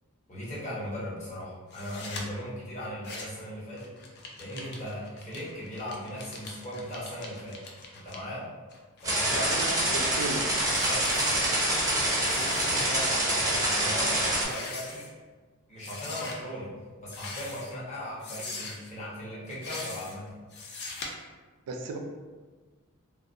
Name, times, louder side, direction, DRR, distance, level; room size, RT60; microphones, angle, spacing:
voice 1, 0.3-7.6 7.9-8.5 9.0-9.5 10.6-11.1 12.2-15.1 15.7-16.7 17.0-20.4, equal, 35° left, -9 dB, 0.9 m, -38 dB
sound 1, 1.7-2.2 2.8-3.4 3.8-8.2 8.7-9.9 10.3-10.5 10.7-12.0 12.2-12.9 13.2-13.3 13.7-13.8 14.3-15.1 15.8-16.4 17.1-17.8 18.2-18.9 19.5-20.2 20.5-21.1, left 3 dB, 50° left, 0.4 m, -41 dB
sound 2, 9.0-14.5, right 1 dB, 15° right, 0.5 m, -26 dB
voice 2, 9.3-10.4 21.7-22.0, right 3 dB, 80° right, 3 dB, 0.3 m, -35 dB
2.4 x 2.1 x 2.5 m, 1.4 s
head